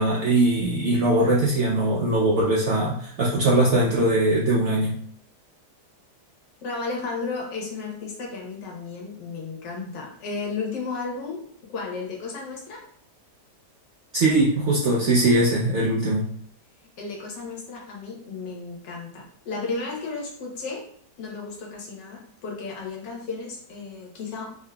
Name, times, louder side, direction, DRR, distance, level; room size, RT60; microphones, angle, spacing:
voice 1, 0.0-5.0 14.1-16.3, right 1 dB, 75° right, -4 dB, 0.6 m, -21 dB
voice 2, 6.6-11.4 11.7-12.8 17.0-20.8 21.2-24.6, left 4 dB, 85° left, -1 dB, 1.7 m, -33 dB
3.7 x 3.6 x 2.2 m, 0.63 s
omnidirectional pair, 1.8 m